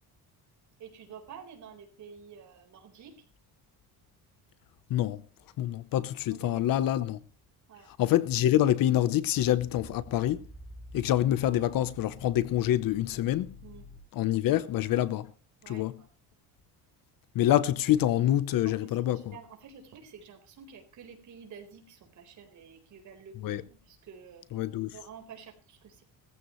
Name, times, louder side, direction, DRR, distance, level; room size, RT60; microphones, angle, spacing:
voice 1, 0.8-3.2 6.3-6.7 7.7-7.9 13.6-13.8 15.6-16.1 18.6-24.4 24.9-26.0, right 6 dB, 50° right, 4.2 m, -50 dB
voice 2, 4.9-5.2 5.6-7.2 8.0-10.5 10.9-13.6 14.1-15.3 15.7-16.0 17.3-19.2 23.4-23.6 24.5-25.0, left 13 dB, 60° left, 0.9 m, -26 dB
sound 1, 9.4-14.0, equal, ahead, 6.9 m, -48 dB
18.5 x 15.0 x 3.1 m
cardioid pair, 170°, 39 cm